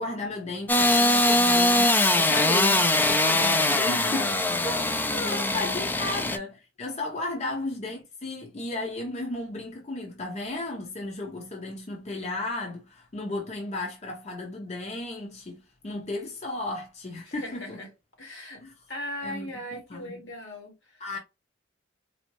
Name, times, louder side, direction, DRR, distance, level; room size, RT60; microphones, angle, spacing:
voice 1, 0.0-4.3 4.6-4.9 5.2-17.8 18.6-18.7 19.2-19.5 19.9-20.3 21.0-21.2, left 2 dB, 35° left, 0.8 m, -34 dB
Engine starting / Sawing, 0.7-6.4, left 2 dB, 10° left, 0.3 m, -22 dB
voice 2, 2.4-2.7 3.9-4.8 5.1-5.5 6.0-6.3 7.3-7.5 17.2-17.9 18.2-18.6 18.9-21.0, left 1 dB, 80° left, 1.5 m, -39 dB
4.1 x 2.0 x 3.0 m
head